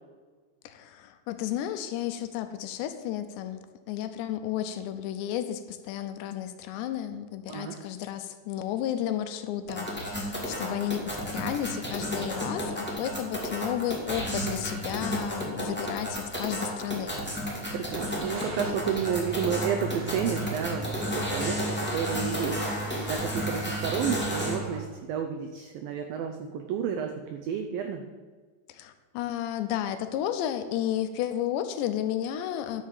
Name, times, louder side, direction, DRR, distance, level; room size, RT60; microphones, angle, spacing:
voice 1, 0.7-17.1 28.7-32.8, left 11 dB, 85° left, 9 dB, 3.1 m, -32 dB
voice 2, 7.5-7.9 17.7-28.0, right 8 dB, 85° right, 4 dB, 2.0 m, -31 dB
sound 1, 9.6-24.6, equal, 5° left, 1.0 m, -32 dB
Car / Engine starting, 17.9-24.8, right 4 dB, 55° right, 4.7 m, -38 dB
11.5 x 6.5 x 7.4 m, 1.5 s
omnidirectional pair, 5.0 m